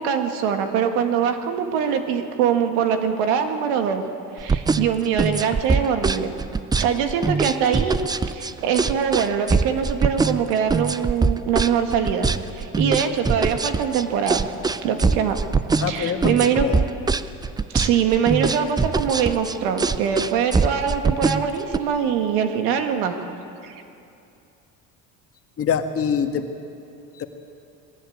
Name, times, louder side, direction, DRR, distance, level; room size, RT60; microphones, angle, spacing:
voice 1, 0.0-4.0 4.4-6.3 6.8-8.0 8.3-14.5 14.8-15.4 15.9-16.7 17.7-23.2 23.6-23.7, right 7 dB, 90° right, 6 dB, 1.9 m, -23 dB
sound 1, 4.4-21.8, right 4 dB, 10° right, 0.4 m, -23 dB
voice 2, 15.8-16.8 25.6-26.5 27.1-27.2, left 7 dB, 40° left, 6 dB, 1.6 m, -25 dB
21.0 x 16.5 x 8.6 m, 2.6 s
cardioid pair, 115°, 35 cm